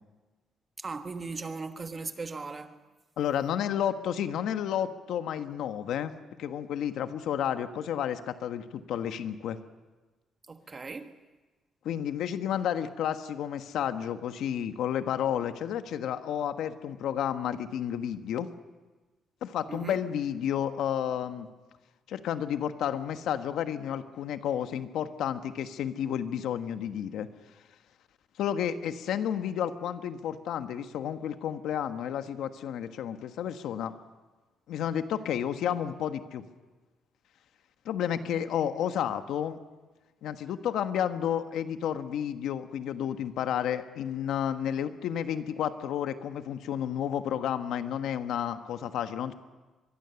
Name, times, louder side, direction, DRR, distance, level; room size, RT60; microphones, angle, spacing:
voice 1, 0.8-2.8 10.5-11.1 19.7-20.0 38.2-38.4, right 4 dB, 25° right, 1.3 m, -38 dB
voice 2, 3.2-6.1 6.4-9.6 11.8-18.5 19.4-21.5 22.1-27.3 28.4-33.9 34.7-36.4 37.8-39.6 40.2-49.3, left 9 dB, 75° left, 1.3 m, -31 dB
23.5 x 23.0 x 7.0 m
cardioid pair, 150°, 0 cm